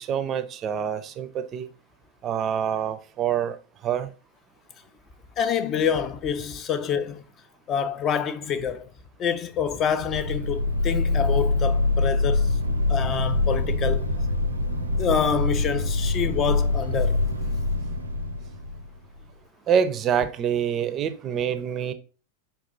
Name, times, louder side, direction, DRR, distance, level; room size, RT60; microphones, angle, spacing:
voice 1, 0.0-1.7 2.2-3.6 3.8-4.1 19.7-21.9, right 8 dB, 30° right, 0.5 m, -26 dB
voice 2, 5.4-7.2 7.7-8.9 9.2-12.5 12.9-14.1 14.8-17.2, left 7 dB, 30° left, 0.4 m, -27 dB
sound 1, 9.9-19.2, left 2 dB, 85° right, 0.5 m, -25 dB
5.1 x 2.4 x 3.8 m
figure-of-eight pair, 90°, 0 cm